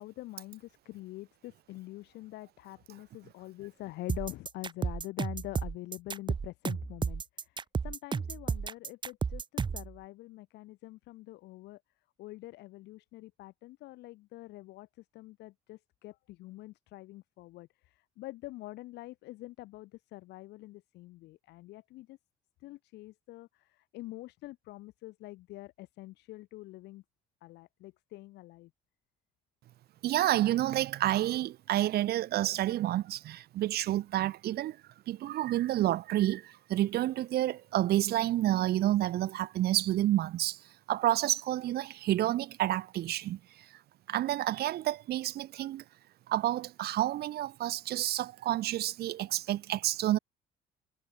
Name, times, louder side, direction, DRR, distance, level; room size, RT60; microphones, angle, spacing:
voice 1, 0.0-7.6 7.8-11.8 12.2-22.2 22.6-27.0 27.4-28.7, left 18 dB, 85° left, 5.5 m, -45 dB
sound 1, 4.1-9.9, right 5 dB, 25° right, 1.1 m, -33 dB
voice 2, 30.0-34.8 35.1-40.6 40.9-43.4 44.1-45.8 46.3-50.2, right 14 dB, 70° right, 2.2 m, -29 dB
cardioid pair, 110°, 17 cm